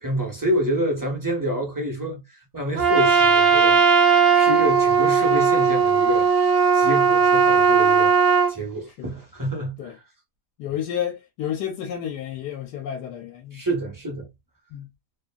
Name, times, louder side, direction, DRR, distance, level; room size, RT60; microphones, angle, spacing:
voice 1, 0.0-3.8 4.3-6.3 6.7-8.1 8.5-9.8 13.5-14.3, right 1 dB, 20° right, 0.5 m, -27 dB
Trumpet, 2.8-8.5, right 6 dB, 75° right, 0.6 m, -17 dB
voice 2, 10.6-13.7 14.7-14.9, left 9 dB, 80° left, 1.2 m, -31 dB
2.9 x 2.5 x 2.2 m
omnidirectional pair, 1.8 m